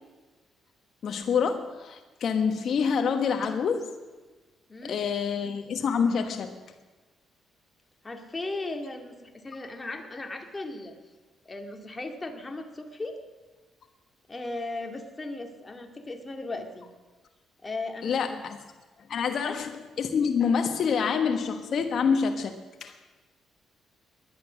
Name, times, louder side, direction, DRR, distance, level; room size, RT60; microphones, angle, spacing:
voice 1, 1.0-3.9 4.9-6.6 18.0-18.6 19.1-22.5 22.8-23.0, left 6 dB, 60° left, 6 dB, 1.2 m, -27 dB
voice 2, 8.0-10.9 11.5-13.2 14.3-16.8 17.6-18.4 19.3-19.6, left 2 dB, 20° left, 4 dB, 2.2 m, -37 dB
19.5 x 10.5 x 6.4 m, 1.3 s
cardioid pair, 90°, 0 cm